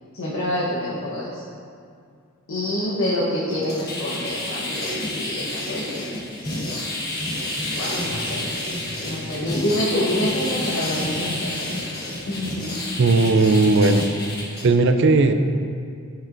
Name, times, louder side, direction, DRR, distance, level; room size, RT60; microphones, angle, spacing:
voice 1, 0.1-1.4 2.5-6.6 7.7-8.5 9.0-12.7, left 1 dB, 80° left, -8 dB, 1.2 m, -27 dB
sound 1, 3.5-14.6, left 1 dB, 50° left, 1.3 m, -29 dB
voice 2, 13.0-14.1 14.6-15.3, right 3 dB, 55° right, 8 dB, 0.4 m, -16 dB
9.1 x 6.4 x 2.6 m, 2.3 s
head